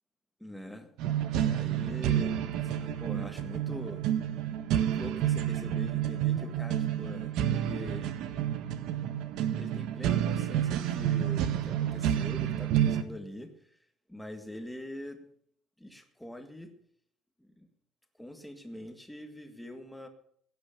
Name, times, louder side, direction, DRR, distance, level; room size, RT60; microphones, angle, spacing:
voice 1, 0.4-0.9 1.3-4.0 4.8-8.1 9.5-13.8 14.1-15.3 15.8-16.7 17.4-17.7 18.2-20.1, left 1 dB, ahead, 6 dB, 1.8 m, -43 dB
sound 1, 1.0-13.0, right 10 dB, 70° right, 1.4 m, -29 dB
16.5 x 9.5 x 6.8 m, 0.65 s
cardioid pair, 175°, 0 cm